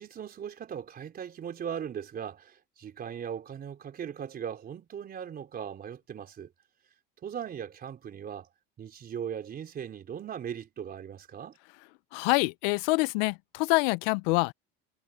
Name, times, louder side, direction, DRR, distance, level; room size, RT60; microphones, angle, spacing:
voice 1, 0.0-6.5 7.2-8.5 8.8-11.6, right 8 dB, 30° right, 4.2 m, -39 dB
voice 2, 12.1-14.5, left 25 dB, 80° left, 0.5 m, -26 dB
supercardioid pair, 130°, 29 cm